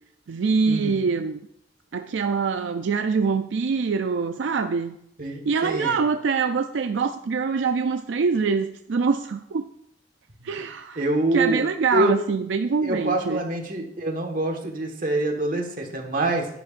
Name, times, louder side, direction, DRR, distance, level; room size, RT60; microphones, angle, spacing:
voice 1, 0.3-1.4 1.9-5.0 5.4-9.7 10.4-13.4, right 5 dB, 80° right, 7 dB, 0.4 m, -24 dB
voice 2, 5.2-6.0 11.0-11.6 11.9-12.1 12.8-16.5, right 1 dB, 50° right, 2 dB, 1.5 m, -25 dB
11.0 x 10.0 x 2.5 m, 0.76 s
head